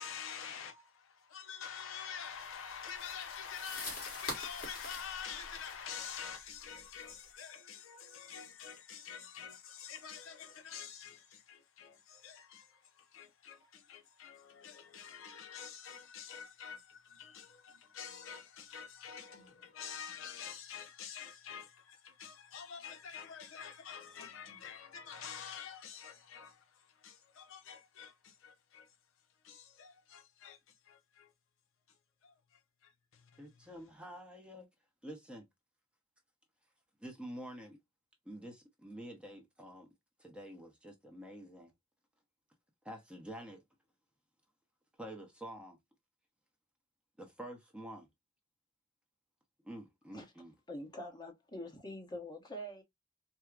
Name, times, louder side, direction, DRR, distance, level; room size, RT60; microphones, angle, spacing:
voice 1, 0.0-28.9 29.4-30.6 30.9-31.3 32.2-32.3 32.8-33.7, left 7 dB, 65° left, 0.6 m, -47 dB
sound 1, 2.4-7.3, left 2 dB, 45° left, 1.6 m, -46 dB
voice 2, 33.4-34.7 35.0-35.5 37.0-37.8 38.2-39.9 40.2-41.7 42.8-43.6 45.0-45.8 47.2-48.1 49.6-50.5, right 1 dB, 5° right, 0.7 m, -48 dB
voice 3, 50.7-52.8, equal, 20° left, 0.9 m, -45 dB
4.5 x 2.0 x 2.3 m
head